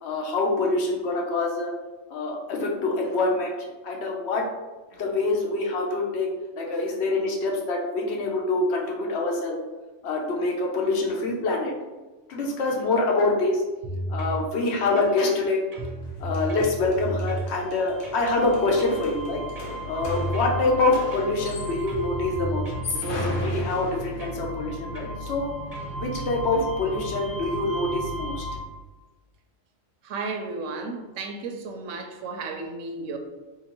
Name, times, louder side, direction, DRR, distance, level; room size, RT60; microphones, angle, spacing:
voice 1, 0.0-1.7 2.1-3.5 3.8-4.5 5.0-6.3 6.6-9.6 10.0-11.7 12.3-13.6 14.1-15.6 16.2-19.4 19.8-22.6 23.0-25.5 25.9-28.4, left 2 dB, 65° left, -1 dB, 1.0 m, -25 dB
sound 1, 13.8-14.4 15.0-15.4 15.7-17.5 18.0-18.3 18.8-19.1 19.6-20.6 21.1-21.6 21.9-23.7 24.2-24.4 25.0-25.2 25.7-26.0, right 1 dB, 40° right, 0.6 m, -33 dB
sound 2, 16.0-16.1 16.3-22.0 22.6-24.5, left 3 dB, 85° left, 1.2 m, -38 dB
sound 3, 17.6-28.6, right 1 dB, 35° left, 0.9 m, -36 dB
voice 2, 30.0-33.2, right 3 dB, 90° right, 4 dB, 0.9 m, -33 dB
3.8 x 2.8 x 2.9 m, 1.2 s
omnidirectional pair, 1.2 m